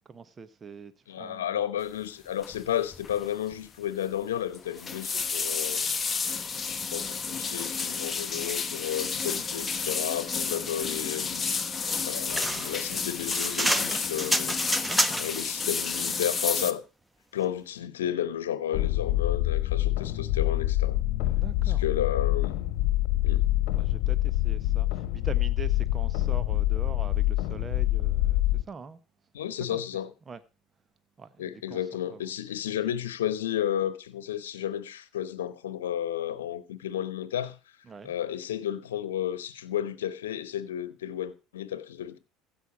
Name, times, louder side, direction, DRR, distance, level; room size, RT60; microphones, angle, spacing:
voice 1, 0.1-0.9 1.2-1.6 10.5-10.7 14.8-15.3 21.4-21.8 23.7-29.0 29.7-29.8 30.3-30.4 31.2-31.8 32.1-32.3 37.9-38.1, right 5 dB, 30° right, 1.0 m, -43 dB
voice 2, 1.1-5.9 6.9-11.4 12.0-14.6 15.2-16.8 17.3-21.0 21.6-22.6 23.2-23.5 29.3-30.1 31.4-37.6 38.0-42.2, left 10 dB, 90° left, 0.9 m, -32 dB
sound 1, 2.4-2.7 2.9-3.2 3.5-3.6 4.5-16.7, left 5 dB, 30° left, 1.1 m, -31 dB
sound 2, 12.3-15.4, right 1 dB, 5° right, 1.1 m, -28 dB
sound 3, 18.7-28.6, left 16 dB, 70° left, 1.2 m, -26 dB
15.5 x 5.6 x 6.0 m
hypercardioid pair, 80°, 0 cm